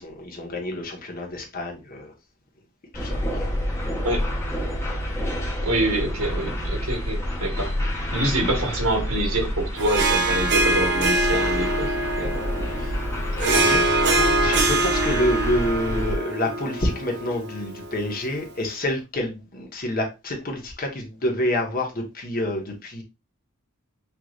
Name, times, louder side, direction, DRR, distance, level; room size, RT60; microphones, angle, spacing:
voice 1, 0.0-2.1 2.9-3.4 12.7-13.0 13.3-13.8 14.2-23.0, left 1 dB, 40° left, 1.3 m, -28 dB
sound 1, 2.9-16.2, left 1 dB, 10° left, 1.1 m, -28 dB
voice 2, 5.6-7.8 8.1-11.9 12.2-12.4 13.6-13.8, right 1 dB, 80° right, 1.8 m, -26 dB
Harp, 9.8-18.4, right 2 dB, 50° right, 0.9 m, -24 dB
5.8 x 3.2 x 2.5 m
head